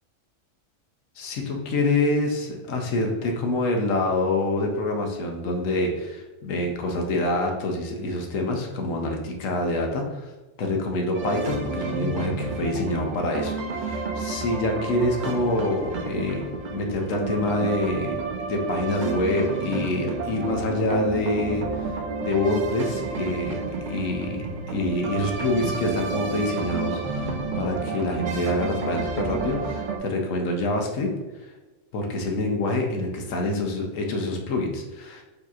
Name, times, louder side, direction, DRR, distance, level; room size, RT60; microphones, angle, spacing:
voice 1, 1.2-10.3 10.6-18.2 18.5-23.6 23.9-31.1 31.9-35.2, left 2 dB, 90° left, 2 dB, 1.1 m, -26 dB
sound 1, 11.1-30.0, right 4 dB, 55° right, 0.5 m, -30 dB
5.0 x 2.8 x 2.4 m, 1.2 s
omnidirectional pair, 1.3 m